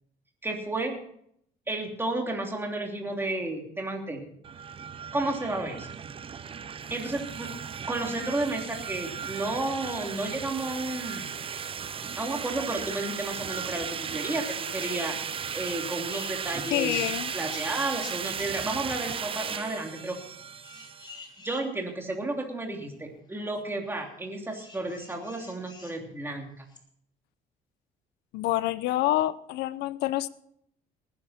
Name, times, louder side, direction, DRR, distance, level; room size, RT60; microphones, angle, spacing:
voice 1, 0.4-1.0 1.7-4.3 5.1-5.9 6.9-7.6 7.9-11.3 12.2-17.0 17.3-20.2 21.4-26.6, right 2 dB, 15° right, 1 dB, 3.1 m, -32 dB
sound 1, 4.4-21.2, right 7 dB, 30° right, 0.7 m, -36 dB
sound 2, 14.8-14.9 15.2-18.5 18.9-19.3 20.6-21.6 22.4-22.5 24.5-26.0 26.7-26.8, left 3 dB, 25° left, 3.2 m, -47 dB
voice 2, 16.7-17.3 28.3-30.3, left 15 dB, 85° left, 17 dB, 0.7 m, -27 dB
19.0 x 10.5 x 4.4 m, 0.68 s
cardioid pair, 110°, 17 cm